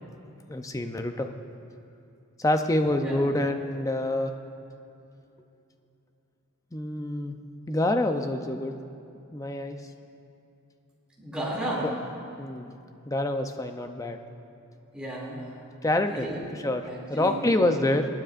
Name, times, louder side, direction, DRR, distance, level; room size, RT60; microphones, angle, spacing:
voice 1, 0.5-1.3 2.4-4.3 6.7-7.4 7.7-8.8 9.3-9.8 11.8-11.9 12.4-12.7 13.1-14.2 15.8-16.3 16.6-18.1, left 1 dB, 15° left, 6 dB, 0.5 m, -26 dB
voice 2, 11.2-11.9 14.9-15.6 16.1-16.4 16.8-17.5, right 1 dB, 5° right, -7 dB, 2.6 m, -34 dB
27.5 x 9.5 x 2.5 m, 2.7 s
head